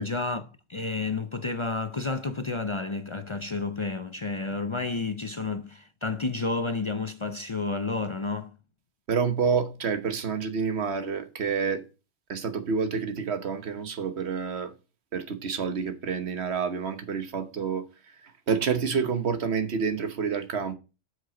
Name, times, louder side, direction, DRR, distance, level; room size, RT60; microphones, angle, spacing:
voice 1, 0.0-8.5, left 3 dB, 35° left, 0.6 m, -31 dB
voice 2, 9.1-11.8 12.3-14.7 15.1-17.9 18.2-20.7, right 6 dB, 75° right, 1.3 m, -28 dB
7.8 x 6.2 x 5.0 m
omnidirectional pair, 1.1 m